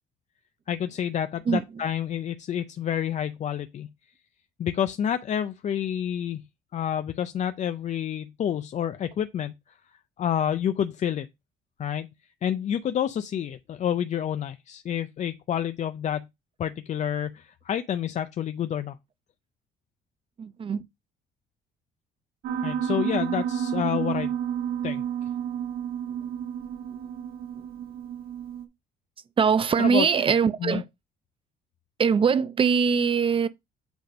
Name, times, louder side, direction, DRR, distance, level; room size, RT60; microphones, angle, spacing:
voice 1, 0.7-3.9 4.6-6.4 6.7-9.5 10.2-11.3 11.8-12.1 12.4-16.3 16.6-19.0 22.6-24.3 24.8-25.0 29.8-30.3 30.6-30.8, left 9 dB, 45° left, 0.6 m, -29 dB
voice 2, 20.4-20.8 26.1-26.3 27.6-27.7 29.4-30.8 32.0-33.5, right 6 dB, 30° right, 0.6 m, -22 dB
Piano, 22.4-28.6, right 8 dB, 65° right, 1.7 m, -30 dB
8.2 x 3.3 x 5.2 m
cardioid pair, 110°, 17 cm